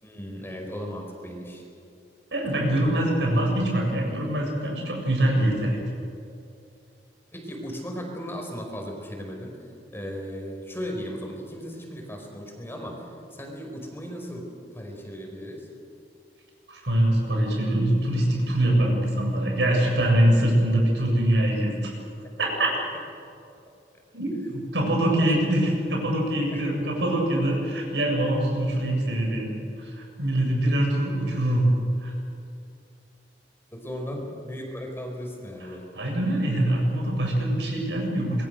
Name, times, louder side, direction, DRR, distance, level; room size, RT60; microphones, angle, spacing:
voice 1, 0.0-1.6 7.3-13.1 13.3-15.7 22.6-22.7 24.4-24.6 25.1-25.3 26.5-26.6 33.7-35.9, equal, 15° left, 1 dB, 4.9 m, -36 dB
voice 2, 2.3-5.8 16.7-21.9 22.4-22.8 24.1-31.7 32.0-32.1 35.9-38.5, right 1 dB, 80° right, 0 dB, 7.6 m, -24 dB
26.5 x 22.0 x 6.8 m, 2.6 s
head